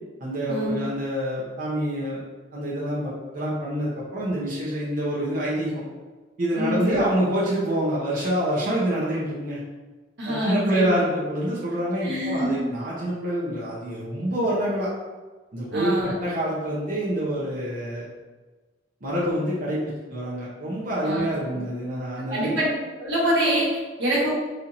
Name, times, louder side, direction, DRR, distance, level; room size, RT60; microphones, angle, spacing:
voice 1, 0.2-2.2 2.5-5.8 6.4-9.6 10.2-14.9 15.5-18.1 19.0-22.5, right 1 dB, 50° right, -8 dB, 0.8 m, -26 dB
voice 2, 6.5-7.0 10.2-10.9 12.0-12.6 15.7-16.1 21.0-21.3 22.3-22.7 23.0-24.3, equal, 85° right, -7 dB, 1.4 m, -25 dB
4.3 x 2.7 x 2.6 m, 1.3 s
head